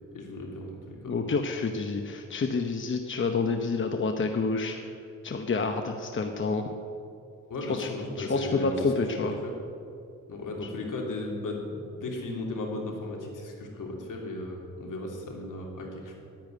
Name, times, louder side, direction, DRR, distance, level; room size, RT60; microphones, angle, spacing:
voice 1, 0.1-1.1 7.5-8.7 9.4-9.5 10.3-16.2, left 2 dB, 70° left, 0 dB, 3.2 m, -36 dB
voice 2, 1.1-4.8 5.2-6.7 7.6-7.9 8.2-9.4, left 4 dB, 35° left, 5 dB, 0.9 m, -28 dB
11.0 x 10.5 x 9.5 m, 2.5 s
wide cardioid pair, 120°, 32 cm